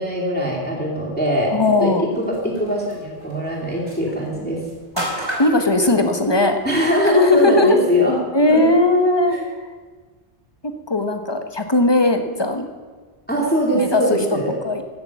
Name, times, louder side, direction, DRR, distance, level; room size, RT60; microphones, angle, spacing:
voice 1, 0.0-1.5 1.8-4.6 6.6-8.2 8.5-8.6 9.3-9.4 13.3-14.5, equal, 10° left, -4 dB, 2.7 m, -21 dB
voice 2, 1.5-2.0 5.0-6.6 7.0-7.7 8.3-9.4 10.6-12.7 13.7-14.2 14.6-14.8, left 2 dB, 25° left, 6 dB, 1.1 m, -18 dB
sound 1, 2.1-7.2, right 1 dB, 45° right, 4.5 m, -35 dB
15.5 x 6.8 x 7.1 m, 1.5 s
omnidirectional pair, 1.0 m